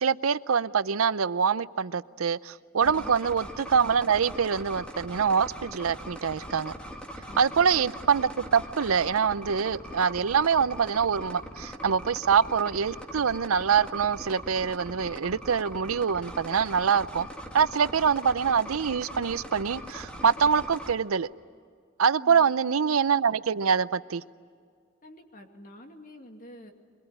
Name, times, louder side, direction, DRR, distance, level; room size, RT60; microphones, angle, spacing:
voice 1, 0.0-6.7 7.4-17.3 17.5-21.3 22.0-24.2, right 6 dB, 90° right, 0.6 m, -25 dB
voice 2, 2.8-3.2 7.3-7.6 22.2-22.5 25.0-26.7, left 1 dB, 40° left, 2.5 m, -48 dB
sound 1, 2.8-20.9, equal, 5° left, 2.0 m, -41 dB
23.5 x 22.0 x 9.9 m
head